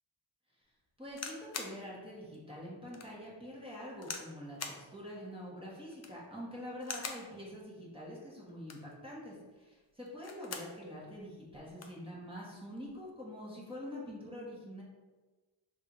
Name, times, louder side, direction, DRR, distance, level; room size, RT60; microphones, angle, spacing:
voice 1, 1.0-4.6 4.9-14.8, equal, 10° right, -6 dB, 1.4 m, -45 dB
sound 1, 1.1-1.8 2.3-2.4 2.9-3.1 4.0-4.3 4.6-4.8 5.9-6.3 6.8-7.3 8.5-8.9 10.1-10.8 11.2-11.3 11.5-12.0 12.8-13.1, left 5 dB, 35° left, 0.5 m, -43 dB
3.5 x 2.7 x 4.5 m, 1.2 s
cardioid pair, 75°, 49 cm